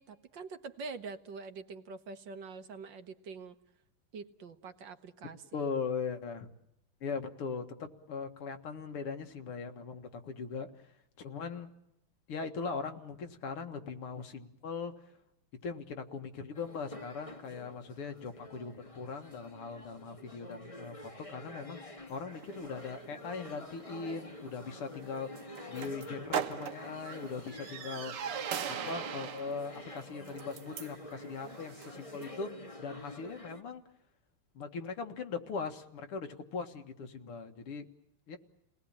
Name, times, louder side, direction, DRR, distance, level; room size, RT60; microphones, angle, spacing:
voice 1, 0.0-3.6 4.1-5.7, right 4 dB, 60° right, 9 dB, 1.8 m, -45 dB
voice 2, 5.5-6.5 7.0-11.7 12.3-15.1 15.6-28.3 28.7-33.8 34.5-37.8 38.3-38.4, left 5 dB, 85° left, 6 dB, 2.6 m, -40 dB
sound 1, 16.5-33.6, left 1 dB, 20° left, 1.3 m, -48 dB
sound 2, 22.3-32.4, right 8 dB, 80° right, 2.1 m, -42 dB
29.5 x 19.0 x 8.9 m, 0.83 s
omnidirectional pair, 2.4 m